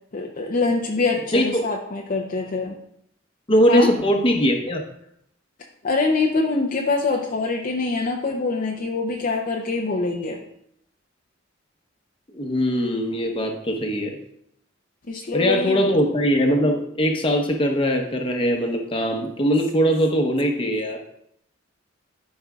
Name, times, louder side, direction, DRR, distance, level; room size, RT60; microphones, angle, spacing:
voice 1, 0.1-2.8 3.7-3.9 5.8-10.4 15.1-15.9, left 3 dB, 45° left, 0 dB, 0.6 m, -24 dB
voice 2, 1.3-1.7 3.5-4.8 12.3-14.2 15.3-21.0, equal, 25° left, 3 dB, 0.9 m, -21 dB
12.5 x 5.3 x 2.4 m, 0.73 s
head